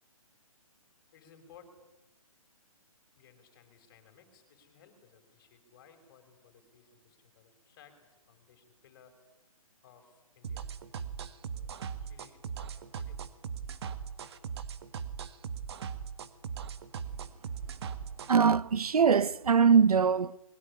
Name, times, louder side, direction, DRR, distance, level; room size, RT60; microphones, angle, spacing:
voice 1, 1.1-1.8 3.1-8.0 8.3-9.2 9.8-11.1 11.4-11.7 12.0-13.3, left 7 dB, 35° left, 5.8 m, -60 dB
sound 1, 10.4-18.4, right 7 dB, 45° right, 2.0 m, -39 dB
voice 2, 18.3-20.4, right 6 dB, 85° right, 0.9 m, -22 dB
25.5 x 22.0 x 10.0 m
hypercardioid pair, 160°, 19 cm